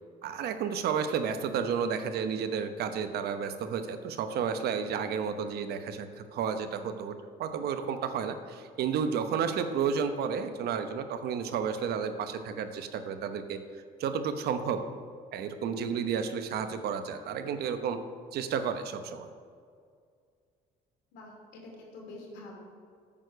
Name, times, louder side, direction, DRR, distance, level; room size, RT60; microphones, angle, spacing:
voice 1, 0.2-13.6 14.0-14.8 15.3-18.0 18.3-19.3, right 6 dB, 70° right, 9 dB, 0.9 m, -32 dB
voice 2, 21.1-22.6, left 2 dB, 85° left, -1 dB, 2.9 m, -46 dB
8.9 x 6.6 x 6.6 m, 2.2 s
cardioid pair, 110°, 17 cm